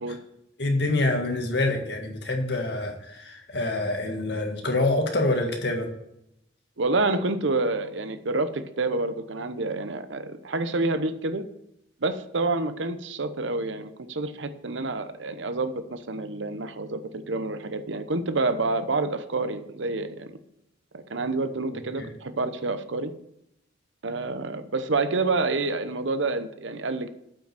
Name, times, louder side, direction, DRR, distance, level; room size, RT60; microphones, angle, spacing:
voice 1, 0.6-5.9 22.0-22.1, left 2 dB, 60° left, 3 dB, 1.8 m, -26 dB
voice 2, 6.8-11.4 12.0-20.4 20.9-23.1 24.0-27.1, right 3 dB, 80° right, 10 dB, 0.9 m, -28 dB
8.5 x 6.1 x 7.6 m, 0.78 s
head